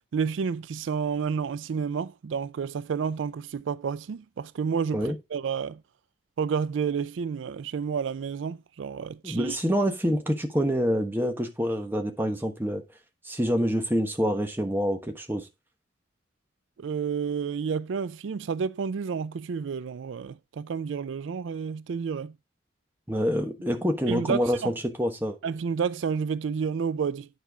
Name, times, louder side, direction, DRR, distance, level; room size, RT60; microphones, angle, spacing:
voice 1, 0.1-5.8 6.4-9.6 16.8-22.3 24.1-24.7 25.4-27.3, right 6 dB, 75° right, 0.4 m, -30 dB
voice 2, 9.2-12.8 13.2-15.5 23.1-25.4, equal, 10° right, 1.1 m, -26 dB
9.4 x 4.4 x 4.7 m
head